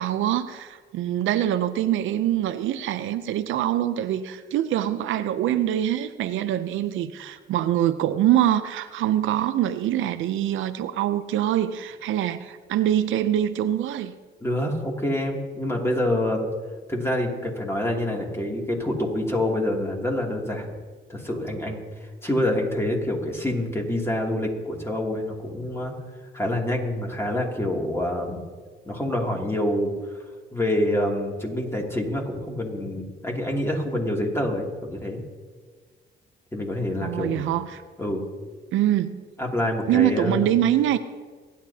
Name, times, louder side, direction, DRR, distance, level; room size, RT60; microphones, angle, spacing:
voice 1, 0.0-14.1 37.0-37.8 38.7-39.2 39.9-41.0, right 12 dB, 80° right, 11 dB, 0.6 m, -24 dB
voice 2, 14.4-16.5 16.9-20.7 21.1-21.8 22.2-25.9 26.3-28.4 28.9-29.9 30.5-35.2 36.5-37.5 38.0-38.2 39.4-40.5, left 1 dB, 15° left, -1 dB, 2.7 m, -26 dB
27.5 x 10.0 x 2.8 m, 1.5 s
cardioid pair, 90°, 20 cm